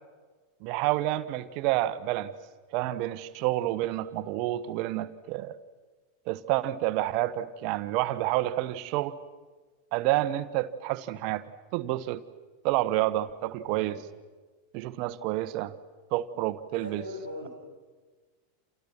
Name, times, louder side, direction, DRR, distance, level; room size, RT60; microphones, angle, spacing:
voice 1, 0.6-2.3 2.7-5.6 6.3-9.2 9.9-11.5 11.7-12.2 12.6-14.0 14.7-15.7 16.1-17.0, right 15 dB, 45° right, 13 dB, 1.3 m, -29 dB
voice 2, 16.7-17.5, left 1 dB, 90° left, 0 dB, 5.9 m, -40 dB
29.5 x 29.0 x 6.1 m, 1.4 s
figure-of-eight pair, 85°, 0 cm